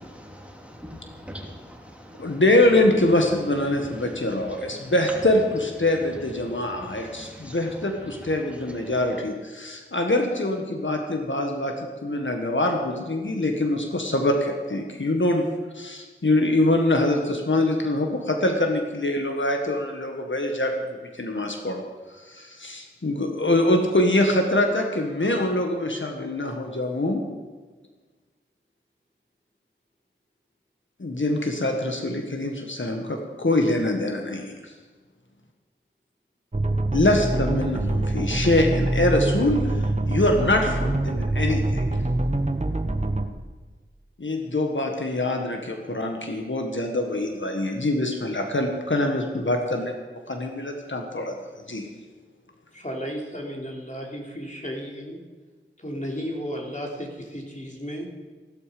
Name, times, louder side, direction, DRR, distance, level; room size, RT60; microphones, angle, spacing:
voice 1, 0.0-5.2 5.8-9.2, equal, 5° right, -1 dB, 3.0 m, -43 dB
voice 2, 2.2-15.5 15.7-20.9 21.1-21.8 22.1-27.2 31.0-34.7 36.9-41.8 44.2-49.9 50.3-51.3 51.7-51.9, left 1 dB, 70° left, 3 dB, 1.5 m, -24 dB
sound 1, 36.5-43.3, right 2 dB, 35° right, 1.1 m, -25 dB
voice 3, 52.7-55.2 55.8-58.1, equal, 40° left, 0 dB, 3.2 m, -34 dB
15.5 x 12.5 x 5.2 m, 1.4 s
wide cardioid pair, 50°, 20 cm